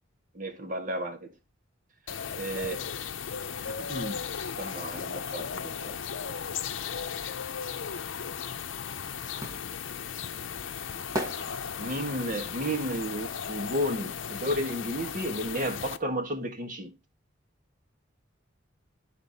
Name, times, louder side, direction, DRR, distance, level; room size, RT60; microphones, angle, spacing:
voice 1, 0.3-1.3 2.4-2.8 3.7-4.2 4.6-6.0 11.8-16.9, equal, 45° right, 1.7 m, -32 dB
sound 1, 2.1-16.0, left 7 dB, 75° left, 0.6 m, -36 dB
sound 2, 9.4-14.4 14.7-16.3 16.5-16.6, right 1 dB, 20° right, 1.4 m, -40 dB
12.5 x 4.2 x 4.1 m
head